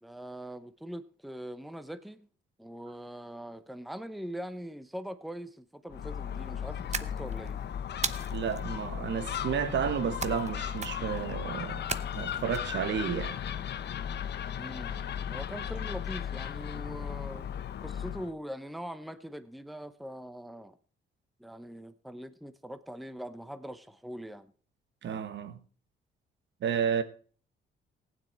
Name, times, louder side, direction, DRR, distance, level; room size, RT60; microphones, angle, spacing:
voice 1, 0.0-2.3 2.6-7.6 14.6-17.5 17.8-20.8 21.4-24.5, equal, ahead, 0.8 m, -42 dB
Gull seagull, 5.9-18.3, left 9 dB, 60° left, 0.8 m, -36 dB
sound 1, 6.9-7.5 8.0-8.6 10.2-10.5 10.8-11.2 11.9-12.6, right 6 dB, 35° right, 0.8 m, -35 dB
voice 2, 8.3-11.8 12.1-13.4 25.0-25.6 26.6-27.0, right 7 dB, 65° right, 1.2 m, -31 dB
15.0 x 9.6 x 4.4 m
cardioid pair, 90°, 20 cm